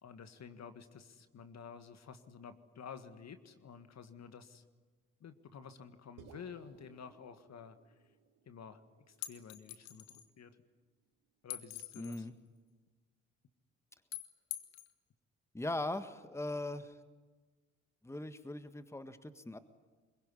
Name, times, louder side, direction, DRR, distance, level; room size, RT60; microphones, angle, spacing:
voice 1, 0.0-4.6 5.2-7.8 8.5-8.8 9.1-10.6 11.4-12.3, left 6 dB, 50° left, 10 dB, 1.8 m, -51 dB
sound 1, 6.2-10.6, right 7 dB, 65° right, 2.4 m, -62 dB
sound 2, 9.2-10.3 11.5-12.3 14.1-14.9, left 15 dB, 80° left, 1.3 m, -44 dB
voice 2, 12.0-12.3 15.5-16.9 18.0-19.6, left 2 dB, 10° left, 11 dB, 1.6 m, -40 dB
25.5 x 22.5 x 9.9 m, 1.4 s
hypercardioid pair, 45°, 35 cm